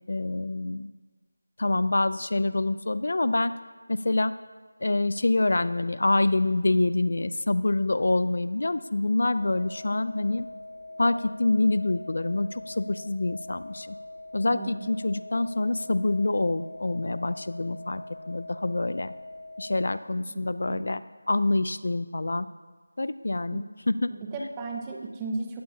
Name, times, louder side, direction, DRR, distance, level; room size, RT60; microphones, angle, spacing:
voice 1, 0.1-0.9 1.6-3.5 3.9-4.3 4.8-10.5 11.0-14.0 14.3-19.1 19.6-21.0 21.3-22.5 23.0-24.1 24.4-24.5, left 2 dB, 50° left, 14 dB, 0.4 m, -26 dB
sound 1, 9.4-19.8, left 2 dB, 30° left, 1.1 m, -43 dB
voice 2, 24.1-25.6, right 3 dB, 10° right, 2 dB, 0.7 m, -35 dB
17.5 x 14.0 x 2.8 m, 1.4 s
figure-of-eight pair, 175°, 0 cm